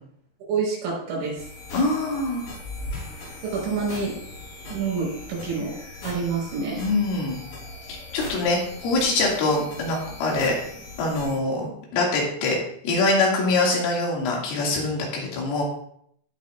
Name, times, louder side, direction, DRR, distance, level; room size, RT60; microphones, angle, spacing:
voice 1, 0.5-1.4 3.4-4.1 4.7-5.8 6.0-6.8, right 5 dB, 85° right, -4 dB, 7.3 m, -27 dB
sound 1, 1.4-11.4, left 2 dB, 45° left, 4.6 m, -40 dB
voice 2, 1.7-2.4 6.8-7.4 8.1-10.5 11.0-12.6 12.8-15.6, left 2 dB, 85° left, -2 dB, 4.9 m, -24 dB
sound 2, 2.6-7.5, left 1 dB, 65° left, 6.0 m, -41 dB
17.5 x 6.7 x 2.5 m, 0.67 s
omnidirectional pair, 5.7 m